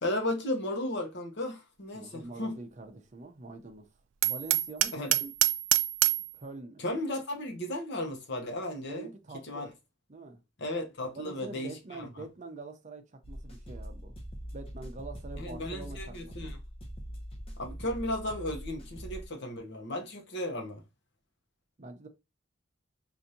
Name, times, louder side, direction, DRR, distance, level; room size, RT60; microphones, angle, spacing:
voice 1, 0.0-2.6 4.9-5.1 6.8-9.1 9.4-9.7 10.6-11.7 12.0-12.1 15.4-16.6 17.6-20.8, left 1 dB, 60° left, 0.9 m, -35 dB
voice 2, 1.9-3.9 4.2-5.3 6.3-6.8 8.9-9.7 10.1-10.4 11.1-14.1 14.5-16.5 21.8-22.1, right 3 dB, 40° right, 0.6 m, -45 dB
Hammer, 4.2-6.3, right 15 dB, 75° right, 0.3 m, -26 dB
sound 1, 13.2-19.3, equal, 30° left, 0.8 m, -42 dB
4.8 x 2.6 x 2.7 m
head